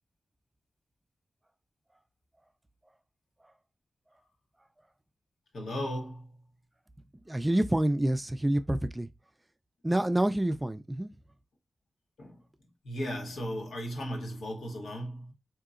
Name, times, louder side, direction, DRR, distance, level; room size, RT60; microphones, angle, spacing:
voice 1, 5.5-6.4 12.2-12.4 12.8-15.3, equal, 90° left, 1.2 m, -36 dB
voice 2, 7.3-9.1 9.8-11.1, right 1 dB, 15° right, 0.3 m, -27 dB
3.9 x 2.8 x 2.4 m
wide cardioid pair, 95°, 0 cm